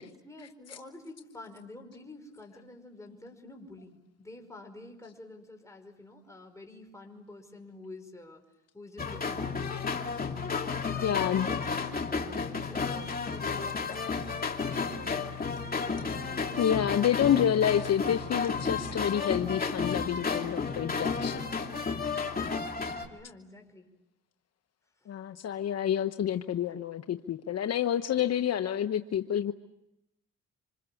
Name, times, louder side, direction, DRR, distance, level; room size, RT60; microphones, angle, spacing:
voice 1, 0.0-8.4 8.7-9.8 10.6-13.9 14.2-15.3 15.8-17.4 23.0-23.9, left 2 dB, 10° left, 4 dB, 5.3 m, -49 dB
sound 1, 9.0-23.1, left 5 dB, 30° left, 2.8 m, -32 dB
voice 2, 11.0-11.5 16.6-21.5 25.1-29.5, left 9 dB, 55° left, 8 dB, 1.1 m, -28 dB
26.5 x 26.5 x 7.2 m, 0.89 s
cardioid pair, 90°, 30 cm